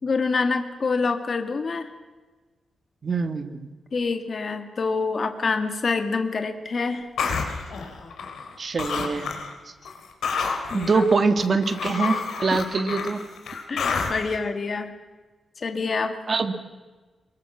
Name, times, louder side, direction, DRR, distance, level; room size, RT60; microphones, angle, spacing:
voice 1, 0.0-1.9 3.9-7.1 10.7-11.0 13.7-14.9 15.6-16.1, left 4 dB, 40° left, 7 dB, 2.1 m, -26 dB
voice 2, 3.0-3.7 8.6-9.3 10.7-13.2 16.3-16.5, right 4 dB, 40° right, 8 dB, 2.0 m, -23 dB
sound 1, 7.2-8.5 8.8-9.5 9.8-14.4, left 5 dB, 85° left, 4.0 m, -29 dB
24.0 x 22.0 x 7.4 m, 1.3 s
wide cardioid pair, 155°, 0 cm